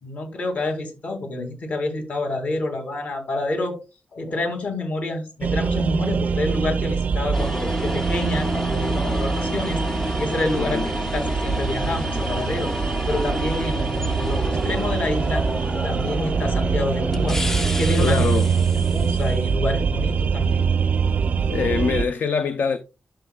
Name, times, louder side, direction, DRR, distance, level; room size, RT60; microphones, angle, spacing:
voice 1, 0.0-3.7 4.1-9.8 10.2-12.7 13.1-15.4 15.8-17.4 17.8-18.3 18.8-20.7, left 2 dB, 55° left, 2.4 m, -28 dB
sound 1, 5.4-22.0, right 6 dB, 50° right, 0.4 m, -24 dB
sound 2, 7.3-19.6, left 1 dB, 15° left, 0.4 m, -31 dB
voice 2, 10.5-10.9 18.0-18.6 21.5-22.8, left 5 dB, 70° left, 0.6 m, -24 dB
11.0 x 6.8 x 2.3 m
wide cardioid pair, 155°, 3 cm